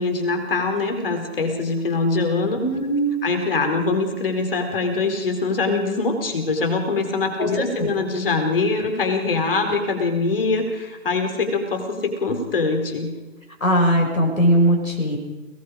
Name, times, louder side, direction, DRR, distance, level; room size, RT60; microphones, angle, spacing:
voice 1, 0.0-2.6 3.2-13.1, left 3 dB, 40° left, 5 dB, 4.4 m, -23 dB
voice 2, 2.6-3.3 7.4-7.9 13.6-15.2, right 1 dB, 80° left, 1 dB, 6.5 m, -20 dB
29.5 x 19.0 x 5.1 m, 1.2 s
figure-of-eight pair, 150°, 41 cm